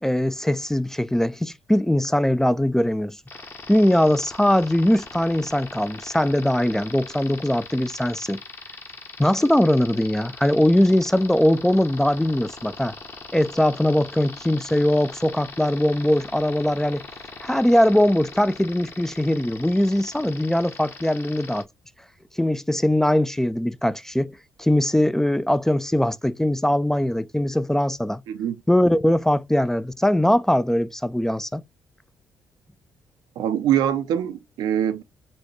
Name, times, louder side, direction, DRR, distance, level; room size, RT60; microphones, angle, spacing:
voice 1, 0.0-3.2 3.7-8.4 9.2-12.9 13.3-17.0 17.4-21.7 22.4-28.2 28.7-31.6, left 1 dB, 5° left, 0.3 m, -21 dB
sound 1, 3.3-21.6, left 3 dB, 35° left, 0.9 m, -40 dB
voice 2, 28.3-28.6 33.4-35.0, right 10 dB, 85° right, 0.6 m, -23 dB
4.2 x 2.2 x 3.0 m
cardioid pair, 70°, 7 cm